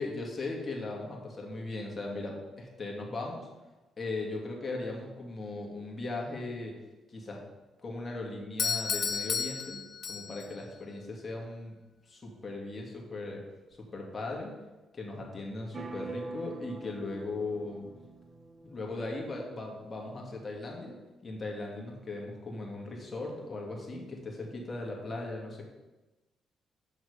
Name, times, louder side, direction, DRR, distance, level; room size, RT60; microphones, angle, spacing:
voice 1, 0.0-3.5 4.0-6.8 7.1-7.4 7.8-9.8 10.1-11.7 12.1-13.4 13.9-14.5 14.9-17.9 18.6-25.6, left 2 dB, 35° left, -1 dB, 2.2 m, -38 dB
Doorbell, 8.6-10.6, left 6 dB, 55° left, 0.6 m, -32 dB
sound 1, 15.7-19.5, right 3 dB, 35° right, 0.9 m, -45 dB
7.6 x 6.4 x 5.1 m, 1.1 s
cardioid pair, 90°, 0 cm